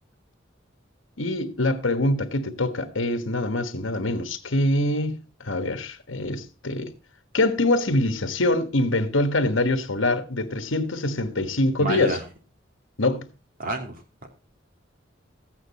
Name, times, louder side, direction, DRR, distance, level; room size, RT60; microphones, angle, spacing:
voice 1, 1.2-6.9 7.3-12.2 13.0-13.3, left 2 dB, 85° left, 1.5 m, -24 dB
voice 2, 11.8-12.2 13.6-14.3, right 1 dB, 45° right, 2.8 m, -29 dB
14.0 x 9.0 x 4.2 m
head